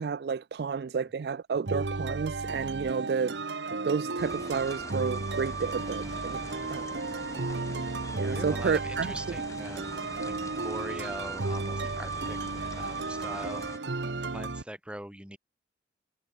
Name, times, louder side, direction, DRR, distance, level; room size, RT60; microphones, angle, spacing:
voice 1, 0.0-3.3 3.8-6.4 6.7-6.9 8.2-9.1, right 5 dB, 60° right, 0.4 m, -31 dB
sound 1, 1.7-14.6, right 3 dB, 80° right, 1.1 m, -34 dB
sound 2, 4.2-13.8, left 2 dB, 15° left, 0.9 m, -45 dB
voice 2, 6.4-6.8 8.3-10.3 10.6-12.4 12.7-13.7 14.3-15.4, right 1 dB, 5° right, 2.4 m, -42 dB
head